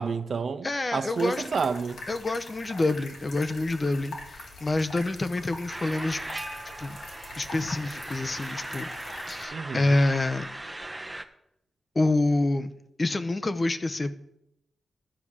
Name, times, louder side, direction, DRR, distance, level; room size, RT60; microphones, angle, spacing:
voice 1, 0.0-2.0 9.5-9.9, right 5 dB, 60° right, 0.5 m, -30 dB
voice 2, 0.6-1.4 2.1-6.2 6.8-7.0 7.4-8.9 9.3-10.5 11.9-12.7 13.0-14.1, left 2 dB, 35° left, 0.7 m, -27 dB
sound 1, 1.1-9.4, left 2 dB, 85° left, 2.3 m, -43 dB
sound 2, 5.7-11.2, right 1 dB, 15° right, 0.8 m, -38 dB
11.5 x 4.8 x 7.2 m
cardioid pair, 75°, 0 cm